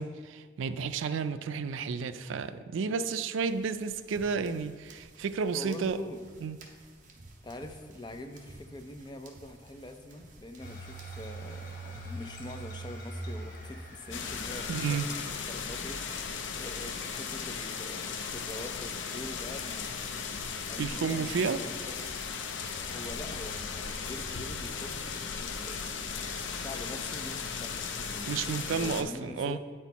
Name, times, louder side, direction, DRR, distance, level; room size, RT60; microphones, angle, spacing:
voice 1, 0.0-6.0 6.4-6.6 14.7-15.1 20.8-21.6 28.3-29.6, right 5 dB, 75° right, 12 dB, 0.4 m, -32 dB
sound 1, 3.5-11.3, right 2 dB, 40° right, 0.8 m, -54 dB
voice 2, 5.5-6.3 7.4-20.1 20.7-22.0 22.7-29.6, left 1 dB, 20° left, 6 dB, 0.4 m, -44 dB
sound 2, 10.6-16.3, right 1 dB, 40° left, 1.1 m, -43 dB
sound 3, 14.1-29.0, left 5 dB, 75° left, 0.6 m, -37 dB
8.8 x 4.4 x 4.1 m, 1.5 s
head